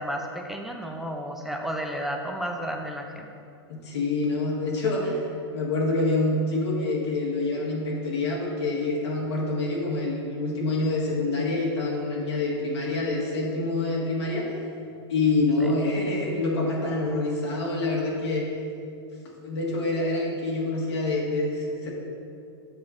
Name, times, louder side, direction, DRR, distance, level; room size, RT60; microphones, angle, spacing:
voice 1, 0.0-3.3 15.6-15.7, equal, ahead, 2 dB, 0.6 m, -32 dB
voice 2, 3.7-5.2 5.5-14.5 15.1-18.5 19.4-21.9, left 2 dB, 85° left, -4 dB, 1.7 m, -26 dB
7.9 x 5.8 x 3.8 m, 2.4 s
hypercardioid pair, 120°, 14 cm